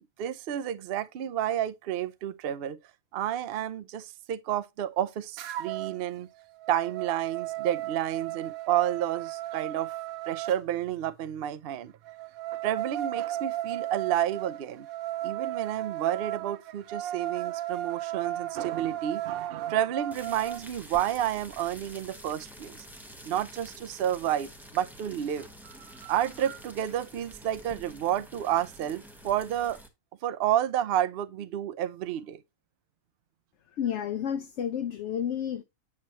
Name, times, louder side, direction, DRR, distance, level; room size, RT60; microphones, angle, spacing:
voice 1, 0.2-2.8 3.1-6.3 6.7-10.0 10.3-11.9 12.6-14.9 15.2-22.9 23.2-29.8 30.2-32.4, right 11 dB, 60° right, 0.6 m, -30 dB
sound 1, 5.4-6.0 6.4-10.6 12.1-20.6, right 14 dB, 80° right, 1.1 m, -35 dB
sound 2, 20.1-29.9, equal, ahead, 1.0 m, -48 dB
voice 2, 33.8-35.6, left 9 dB, 65° left, 0.9 m, -31 dB
7.5 x 7.4 x 2.9 m
omnidirectional pair, 1.5 m